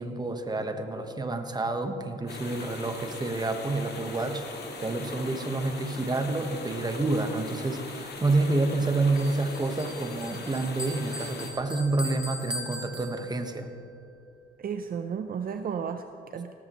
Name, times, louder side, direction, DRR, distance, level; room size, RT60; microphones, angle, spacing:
voice 1, 0.0-13.7, right 2 dB, 20° right, 6 dB, 1.1 m, -29 dB
sound 1, 2.3-11.5, left 3 dB, 55° left, 2.0 m, -40 dB
Bell, 9.1-13.7, left 1 dB, 5° right, 1.6 m, -40 dB
voice 2, 14.6-16.5, right 7 dB, 45° right, 8 dB, 0.6 m, -33 dB
17.0 x 13.5 x 3.1 m, 2.5 s
cardioid pair, 90°, 20 cm